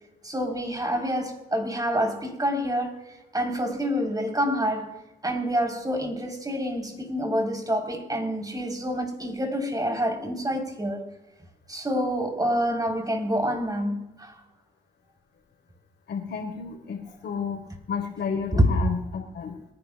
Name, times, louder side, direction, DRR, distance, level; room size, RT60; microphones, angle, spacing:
voice 1, 0.2-3.0 3.3-4.9 5.2-11.0 11.7-14.3 18.5-18.8, equal, 20° right, 4.0 m, -27 dB
voice 2, 16.1-17.6 17.9-19.7, left 6 dB, 80° left, 4.1 m, -32 dB
26.0 x 10.5 x 2.4 m
supercardioid pair, 55°, 18 cm